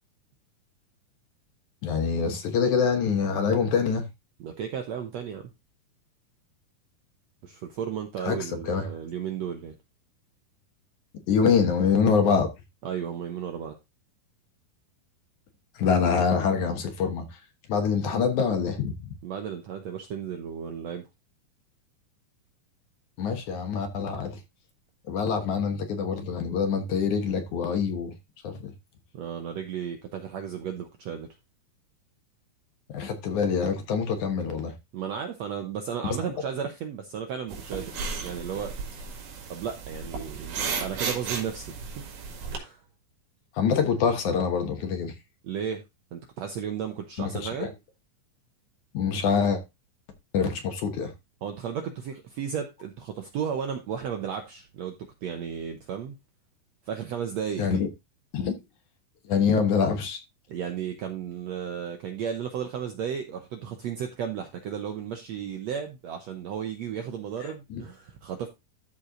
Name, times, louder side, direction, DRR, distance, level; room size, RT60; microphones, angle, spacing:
voice 1, 1.8-4.1 8.2-8.9 11.3-12.5 15.7-17.4 17.7-19.1 23.2-24.4 25.1-28.1 28.4-28.7 32.9-34.7 43.5-45.1 47.2-47.7 48.9-49.6 50.3-51.1 57.6-57.9 58.3-58.6 59.2-60.2 67.4-67.8, left 6 dB, 60° left, 2.5 m, -25 dB
voice 2, 4.4-5.4 7.4-9.8 12.8-13.7 19.2-21.0 29.1-31.3 34.9-37.9 38.2-38.7 39.5-42.0 42.5-42.8 45.4-45.8 46.1-47.7 51.4-54.9 55.2-56.1 56.9-57.8 60.5-68.5, right 8 dB, 70° right, 1.6 m, -34 dB
sound 1, 37.5-42.6, right 5 dB, 90° right, 3.9 m, -34 dB
13.5 x 4.5 x 3.8 m
omnidirectional pair, 4.2 m